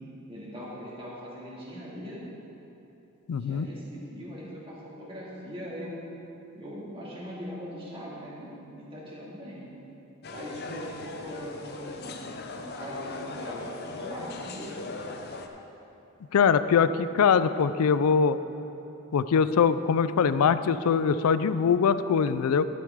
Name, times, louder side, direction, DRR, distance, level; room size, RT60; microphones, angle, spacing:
voice 1, 0.3-2.2 3.3-6.0 6.5-8.5 8.8-9.7 10.3-12.2 12.6-14.7, equal, 25° right, -6 dB, 2.1 m, -40 dB
voice 2, 3.3-3.7 16.3-18.4 19.1-22.7, left 6 dB, 90° left, 13 dB, 0.4 m, -22 dB
sound 1, 10.2-15.5, left 3 dB, 50° left, 0.6 m, -39 dB
11.5 x 9.6 x 3.6 m, 3.0 s
head